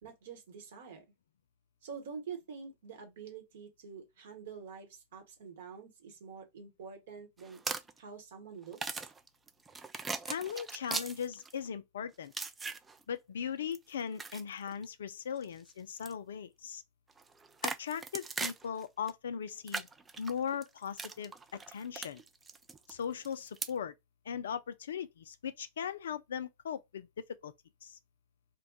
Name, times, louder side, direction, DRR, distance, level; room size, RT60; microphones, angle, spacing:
voice 1, 0.0-1.0 1.8-7.6 8.0-9.1, right 6 dB, 60° right, 1.0 m, -47 dB
sound 1, 7.4-8.0 8.6-11.7 12.3-13.0 13.7-14.8 15.4-15.7 16.0-16.1 17.1-19.1 19.5-23.7, right 4 dB, 15° right, 0.3 m, -40 dB
voice 2, 10.3-12.3 13.1-16.8 17.6-19.9 20.2-22.2 22.9-23.9 24.3-27.5 27.8-28.0, left 7 dB, 65° left, 0.3 m, -39 dB
2.6 x 2.2 x 3.8 m
figure-of-eight pair, 90°, 0 cm